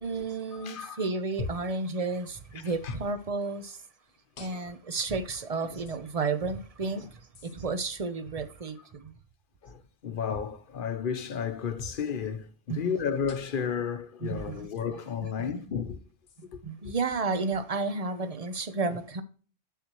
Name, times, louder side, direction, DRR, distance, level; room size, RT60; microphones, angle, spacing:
voice 1, 0.0-3.8 4.4-9.1 12.7-12.8 14.2-14.7 16.4-19.2, right 4 dB, 40° right, 0.8 m, -32 dB
voice 2, 0.6-1.1 2.8-2.9 4.5-4.7 7.0-7.1 9.6-16.0 16.5-16.6 18.9-19.0, left 7 dB, 55° left, 0.9 m, -33 dB
sound 1, 1.4-1.8 2.9-3.1 4.4-4.9 5.9-6.0 7.3-7.5 10.3-10.6 11.8-12.0 13.3-13.7 14.8-14.9 16.3-16.5, left 4 dB, 75° left, 1.2 m, -41 dB
7.6 x 6.9 x 3.0 m
omnidirectional pair, 1.1 m